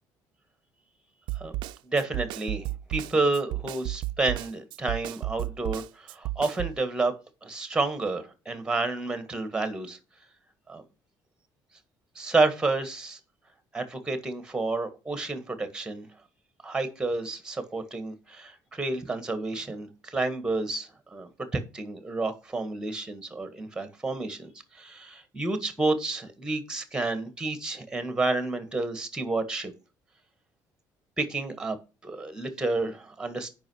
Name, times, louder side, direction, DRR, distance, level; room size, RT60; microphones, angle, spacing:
Snare drum, 1.3-6.8, right 17 dB, 85° right, 0.4 m, -33 dB
voice 1, 1.8-7.1 7.4-10.0 10.7-10.8 12.2-13.2 13.7-16.1 16.6-29.7 31.2-31.8 32.0-33.5, right 3 dB, 10° right, 10 dB, 1.7 m, -30 dB
8.6 x 5.6 x 6.2 m, 0.32 s
cardioid pair, 145°, 8 cm